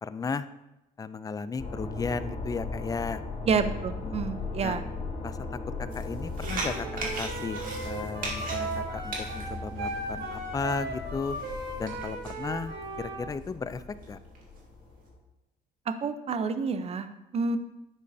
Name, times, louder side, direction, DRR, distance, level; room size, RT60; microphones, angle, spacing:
voice 1, 0.0-0.5 1.0-3.2 4.0-4.3 4.6-4.8 5.2-11.4 11.8-14.2, left 5 dB, 20° left, 13 dB, 0.4 m, -35 dB
sound 1, 1.6-15.2, left 3 dB, 45° left, 3.1 m, -38 dB
voice 2, 3.5-4.8 15.9-17.6, right 5 dB, 35° right, 11 dB, 0.7 m, -29 dB
sound 2, 5.9-10.5 11.2-12.4 12.8-12.9 13.4-13.5 14.0-14.6, right 3 dB, 55° right, 2.3 m, -38 dB
Wind instrument woodwind instrument, 6.4-13.2, right 2 dB, 75° right, 1.8 m, -37 dB
11.0 x 7.3 x 2.7 m, 0.92 s
cardioid pair, 110°, 17 cm